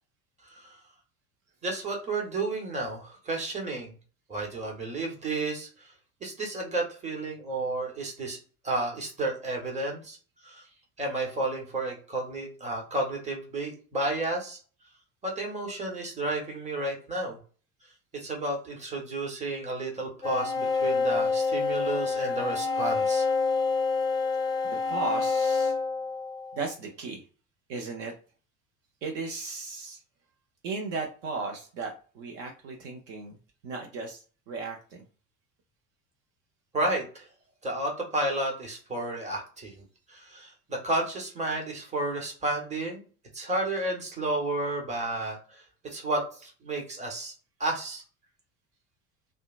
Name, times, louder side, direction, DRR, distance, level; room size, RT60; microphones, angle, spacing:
voice 1, 1.6-3.9 4.3-5.9 6.2-8.4 8.6-10.2 10.4-10.6 11.0-14.6 15.2-17.4 18.1-23.3 36.7-37.3 37.6-43.0 43.3-47.3 47.6-48.0, right 2 dB, 15° right, 0 dB, 1.1 m, -32 dB
sound 1, 20.2-26.7, left 4 dB, 10° left, 0.3 m, -27 dB
voice 2, 24.6-25.7 26.5-27.2 27.7-28.1 29.0-30.0 30.6-33.4 33.6-35.0, right 4 dB, 55° right, 2 dB, 0.7 m, -36 dB
2.7 x 2.2 x 2.4 m, 0.38 s
figure-of-eight pair, 65°, 45 cm